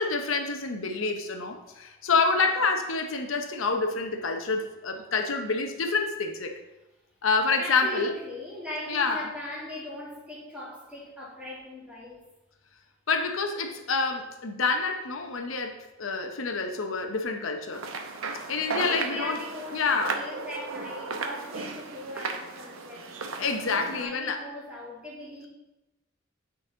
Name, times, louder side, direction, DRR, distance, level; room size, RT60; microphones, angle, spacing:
voice 1, 0.0-6.6 7.2-8.1 8.9-9.3 13.1-17.9 18.3-19.4 19.7-20.2 23.4-24.4, left 4 dB, 80° left, 5 dB, 0.8 m, -27 dB
voice 2, 7.6-12.2 18.3-18.5 18.8-23.1 23.6-25.5, left 1 dB, 5° right, -7 dB, 1.8 m, -39 dB
sound 1, 17.7-24.0, right 4 dB, 90° right, 0.8 m, -35 dB
9.2 x 4.0 x 3.9 m, 1.0 s
head